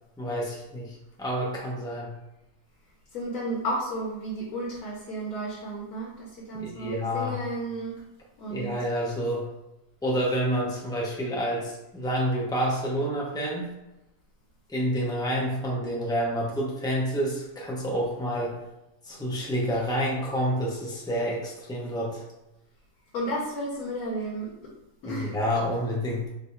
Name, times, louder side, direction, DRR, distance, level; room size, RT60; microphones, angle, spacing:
voice 1, 0.2-2.2 6.5-7.4 8.5-9.5 10.0-13.7 14.7-18.6 19.0-22.2 25.0-26.3, equal, 5° left, -4 dB, 0.4 m, -28 dB
voice 2, 3.1-8.0 8.4-8.8 23.1-24.7 25.0-25.4, right 1 dB, 65° left, -3 dB, 1.3 m, -33 dB
3.5 x 2.7 x 4.4 m, 0.92 s
omnidirectional pair, 1.7 m